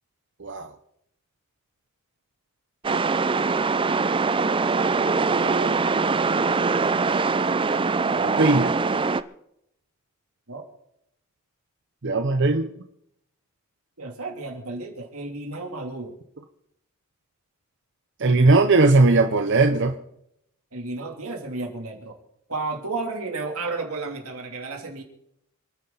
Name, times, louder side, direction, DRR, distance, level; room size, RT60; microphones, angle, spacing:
voice 1, 0.4-0.7 5.3-5.8 8.2-8.7 12.0-12.7 18.2-19.9, right 3 dB, 55° right, 7 dB, 0.8 m, -19 dB
sound 1, 2.8-9.2, right 4 dB, 25° right, 0.5 m, -23 dB
voice 2, 14.0-16.2 20.7-22.2 22.5-25.0, right 3 dB, 90° right, 2 dB, 3.1 m, -32 dB
28.0 x 9.9 x 4.0 m, 0.76 s
head